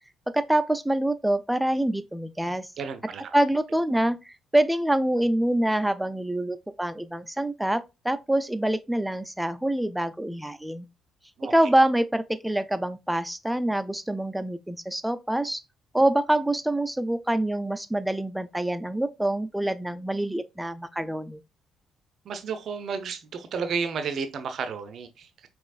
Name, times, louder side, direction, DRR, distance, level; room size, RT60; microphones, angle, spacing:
voice 1, 0.3-2.7 3.3-10.9 11.5-15.6 15.9-21.4, right 1 dB, 5° right, 0.5 m, -25 dB
voice 2, 2.8-3.3 11.4-11.5 22.2-25.5, right 5 dB, 55° right, 0.6 m, -32 dB
5.2 x 3.0 x 2.3 m
figure-of-eight pair, 45°, 0 cm